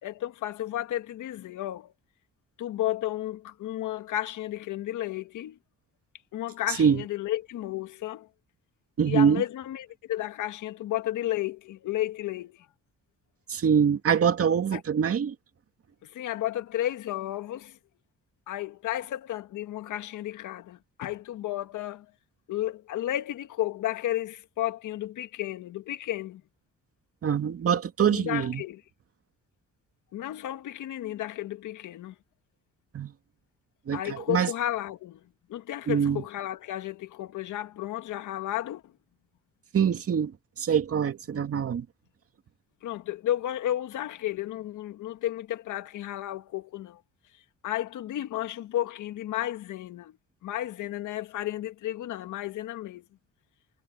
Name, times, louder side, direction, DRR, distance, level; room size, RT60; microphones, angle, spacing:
voice 1, 0.0-1.9 2.6-5.6 6.3-8.3 9.1-12.7 14.7-14.8 16.0-17.8 18.5-22.1 22.5-26.4 28.1-28.8 30.1-32.2 33.9-35.2 35.5-38.9 42.8-47.0 47.6-50.1 50.4-53.1, left 13 dB, 80° left, 1.7 m, -33 dB
voice 2, 6.7-7.0 9.0-9.4 13.5-15.3 27.2-28.6 32.9-33.1 33.9-34.5 35.9-36.2 39.7-40.3 40.6-41.9, right 7 dB, 50° right, 2.3 m, -24 dB
cardioid pair, 90°, 30 cm